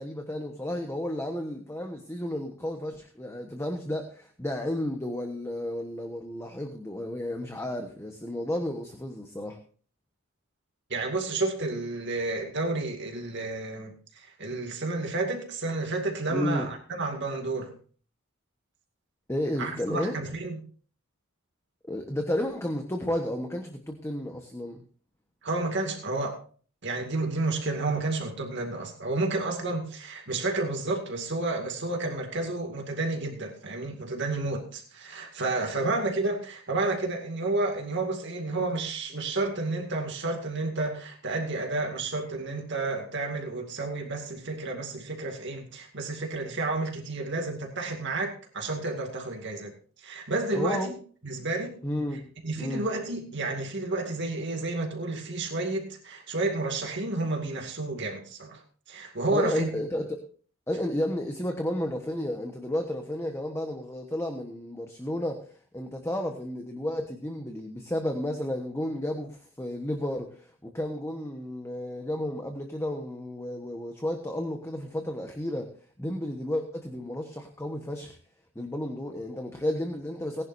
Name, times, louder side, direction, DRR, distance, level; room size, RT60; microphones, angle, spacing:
voice 1, 0.0-9.6 16.3-16.7 19.3-20.2 21.9-24.8 50.5-50.9 51.8-52.2 52.6-52.9 59.3-60.2 60.7-75.7 76.0-78.2 78.5-80.4, left 1 dB, 15° left, 4 dB, 1.1 m, -32 dB
voice 2, 10.9-17.7 19.6-20.6 25.4-26.4 26.8-49.7 50.0-51.0 51.2-51.7 52.4-58.6 58.9-59.7, right 2 dB, 55° right, 2 dB, 2.2 m, -31 dB
19.0 x 10.5 x 2.7 m, 0.43 s
head